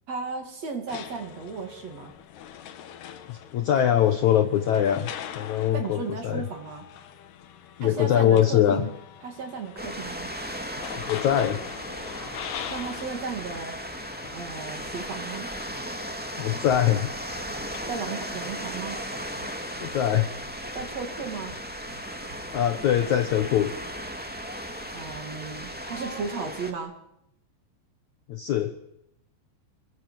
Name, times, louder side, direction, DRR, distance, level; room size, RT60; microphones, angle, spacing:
voice 1, 0.1-2.1 5.7-6.8 7.8-8.9 9.2-10.3 12.7-13.8 14.3-15.5 17.9-19.0 20.7-21.6 24.9-26.9, right 5 dB, 45° right, 5 dB, 3.0 m, -35 dB
sound 1, 0.9-18.5, left 9 dB, 70° left, 3.4 m, -43 dB
voice 2, 3.3-6.4 7.8-8.9 11.1-11.6 16.4-17.1 19.8-20.3 22.5-23.7 28.3-28.7, left 10 dB, 85° left, 9 dB, 1.6 m, -23 dB
sound 2, 9.8-26.7, equal, 5° right, 0.9 m, -36 dB
sound 3, 18.3-18.8 19.1-19.9 20.1-20.9 21.2-23.7, right 3 dB, 70° right, 5.4 m, -50 dB
28.5 x 21.5 x 7.7 m, 0.80 s
omnidirectional pair, 5.2 m